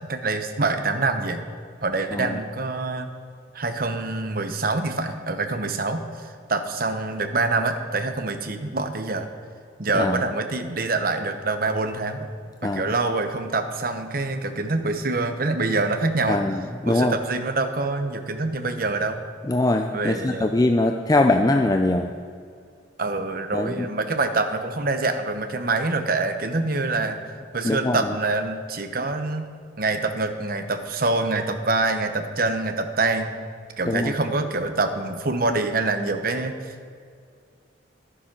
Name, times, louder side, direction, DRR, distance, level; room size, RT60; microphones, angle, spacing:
voice 1, 0.1-1.4 1.8-3.1 3.5-9.3 9.8-12.3 12.6-16.4 16.9-19.2 19.9-20.5 23.0-27.2 27.5-29.5 29.8-33.3 33.8-36.9, right 3 dB, 45° right, 7 dB, 0.9 m, -25 dB
voice 2, 16.3-17.2 19.5-22.1 23.5-23.9 27.6-28.0 33.9-34.2, left 2 dB, 20° left, 5 dB, 0.4 m, -22 dB
11.5 x 10.0 x 6.0 m, 2.3 s
head